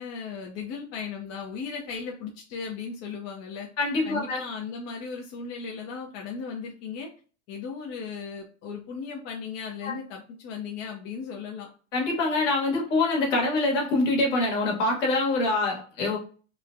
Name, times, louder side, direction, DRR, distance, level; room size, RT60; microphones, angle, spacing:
voice 1, 0.0-3.7 4.0-7.1 7.5-11.7, left 5 dB, 40° left, 0 dB, 0.6 m, -36 dB
voice 2, 3.8-4.4 9.8-9.9 11.9-16.2, left 2 dB, 65° left, 0 dB, 1.3 m, -25 dB
3.1 x 2.1 x 2.5 m, 0.38 s
hypercardioid pair, 110°, 39 cm